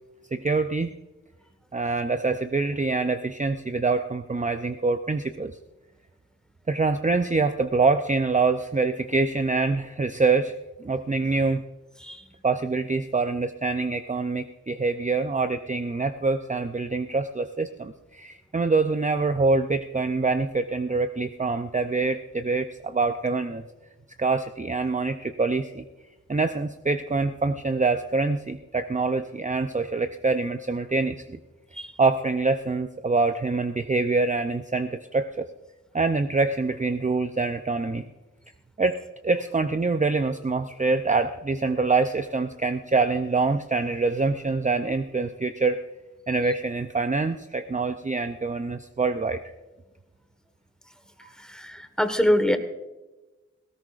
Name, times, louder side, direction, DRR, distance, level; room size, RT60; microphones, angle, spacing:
voice 1, 0.3-0.9 1.7-5.6 6.7-11.6 12.4-23.6 24.2-25.8 26.3-31.4 32.0-35.5 35.9-38.0 38.8-39.0 39.2-45.8 46.3-49.4 51.2-51.3, right 3 dB, 25° right, 9 dB, 0.5 m, -25 dB
voice 2, 51.4-52.6, equal, ahead, 8 dB, 1.4 m, -24 dB
18.5 x 17.0 x 2.5 m, 1.1 s
wide cardioid pair, 65°, 30 cm